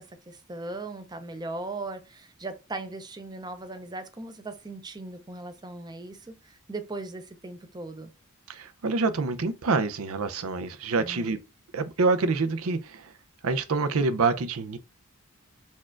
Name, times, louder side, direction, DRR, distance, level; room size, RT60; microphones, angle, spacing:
voice 1, 0.0-8.1 11.0-11.2, right 2 dB, 20° right, 0.5 m, -38 dB
voice 2, 8.5-11.4 11.7-13.1 13.4-14.8, right 3 dB, 70° right, 0.5 m, -26 dB
4.3 x 2.4 x 4.4 m
head